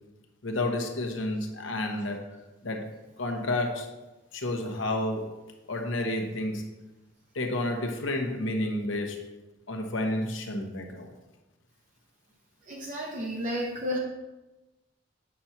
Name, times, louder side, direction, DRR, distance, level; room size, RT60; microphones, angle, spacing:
voice 1, 0.4-2.2 2.6-2.9 3.2-3.9 4.3-5.3 5.7-6.6 7.3-9.2 9.7-11.1, left 1 dB, 85° left, 3 dB, 1.1 m, -30 dB
voice 2, 12.7-14.0, equal, 40° right, -1 dB, 0.8 m, -32 dB
8.4 x 2.9 x 5.9 m, 1.1 s
head